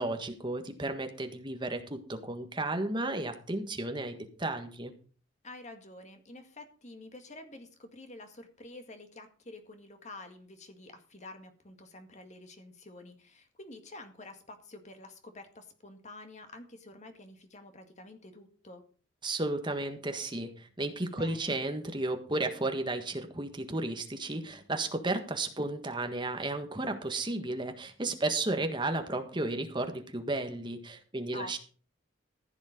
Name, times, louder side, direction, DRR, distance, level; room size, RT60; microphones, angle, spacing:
voice 1, 0.0-4.9 19.2-31.6, right 2 dB, 25° right, 6 dB, 1.5 m, -33 dB
voice 2, 5.4-18.8 21.1-21.6 31.3-31.6, left 2 dB, 40° left, 6 dB, 1.9 m, -48 dB
15.0 x 7.3 x 5.2 m, 0.42 s
head